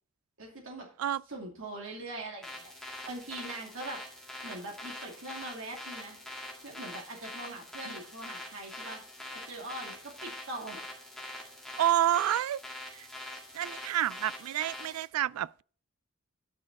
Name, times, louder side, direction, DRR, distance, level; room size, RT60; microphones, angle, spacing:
voice 1, 0.4-0.9 1.3-4.0 4.4-6.2 6.6-9.0 9.3-10.9, right 2 dB, 65° right, 2.5 m, -42 dB
sound 1, 2.4-15.0, left 1 dB, 5° left, 2.0 m, -44 dB
voice 2, 11.8-12.6 12.9-13.1 13.5-15.6, right 12 dB, 85° right, 0.3 m, -29 dB
9.8 x 6.4 x 4.1 m
head